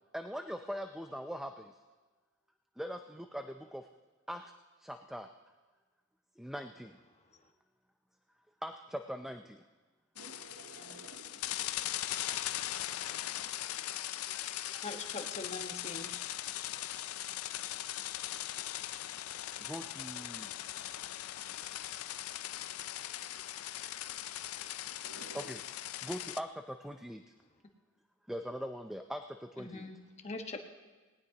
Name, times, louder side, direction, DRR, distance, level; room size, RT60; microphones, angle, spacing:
voice 1, 0.1-1.6 2.8-3.8 4.3-4.4 4.8-5.3 6.4-6.9 8.6-9.4 14.3-14.4 15.2-15.3 19.7-20.5 25.3-25.6 26.0-27.2 28.3-29.2 29.6-29.9, equal, ahead, 6 dB, 0.5 m, -41 dB
sound 1, 10.2-26.4, left 13 dB, 85° left, 0.4 m, -40 dB
voice 2, 10.2-12.0 13.2-13.5 25.0-25.5, right 4 dB, 75° right, 10 dB, 0.8 m, -54 dB
voice 3, 14.8-16.1 29.6-29.9 30.2-30.6, left 3 dB, 30° left, 4 dB, 1.3 m, -42 dB
19.0 x 18.5 x 2.9 m, 1.3 s
head